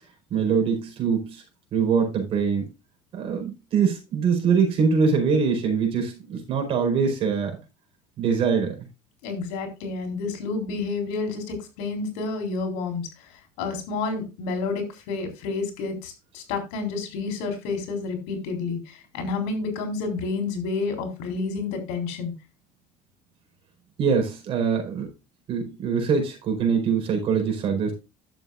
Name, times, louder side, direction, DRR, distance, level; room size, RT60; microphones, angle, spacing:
voice 1, 0.3-1.4 1.7-2.7 3.1-7.6 8.2-8.8 24.0-25.1 25.5-27.9, right 6 dB, 50° right, 3 dB, 4.7 m, -23 dB
voice 2, 9.2-13.3 13.6-22.3, left 4 dB, 90° left, 5 dB, 3.9 m, -30 dB
11.5 x 7.8 x 2.5 m, 0.27 s
cardioid pair, 130°, 12 cm